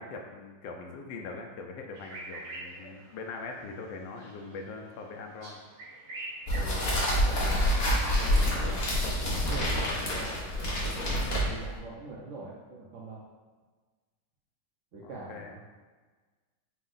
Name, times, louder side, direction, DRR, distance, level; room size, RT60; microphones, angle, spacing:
voice 1, 0.0-5.6 15.0-15.5, left 4 dB, 80° left, 2 dB, 1.3 m, -42 dB
sound 1, 1.9-9.5, right 2 dB, 60° right, 1.0 m, -47 dB
sound 2, 6.5-11.8, equal, 50° left, 0.7 m, -27 dB
voice 2, 6.5-13.2 14.9-15.8, right 3 dB, 80° right, -5 dB, 0.7 m, -43 dB
4.5 x 2.1 x 3.8 m, 1.4 s
omnidirectional pair, 2.0 m